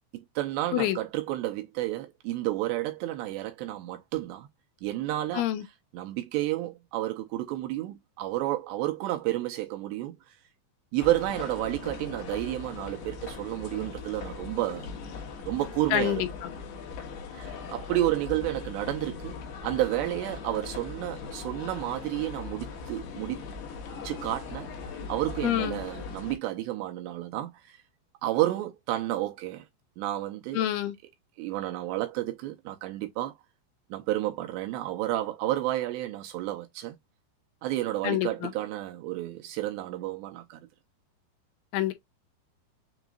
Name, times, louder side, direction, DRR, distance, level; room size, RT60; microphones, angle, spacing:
voice 1, 0.1-4.5 4.8-5.5 5.9-10.4 10.9-14.9 15.5-16.3 17.3-23.4 24.0-24.7 25.1-27.8 28.2-29.7 30.0-30.7 31.4-33.4 33.9-37.0 37.6-40.7, right 15 dB, 85° right, 2.6 m, -31 dB
voice 2, 5.3-5.6 15.9-16.3 25.4-25.8 30.5-30.9 38.0-38.5 41.7-41.9, left 13 dB, 85° left, 3.2 m, -27 dB
sound 1, 11.0-26.4, left 5 dB, 65° left, 3.0 m, -40 dB
7.2 x 3.0 x 2.3 m
omnidirectional pair, 5.4 m